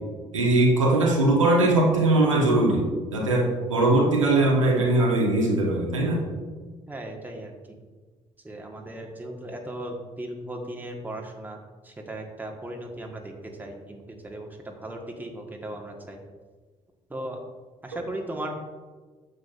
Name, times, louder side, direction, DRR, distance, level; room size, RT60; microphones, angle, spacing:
voice 1, 0.3-6.2, right 2 dB, 85° right, -2 dB, 1.2 m, -21 dB
voice 2, 6.9-7.8 8.4-11.6 11.8-16.2 17.1-17.4 17.8-18.6, right 1 dB, 10° right, 1 dB, 1.4 m, -37 dB
9.0 x 8.0 x 2.5 m, 1.4 s
figure-of-eight pair, 45°, 16 cm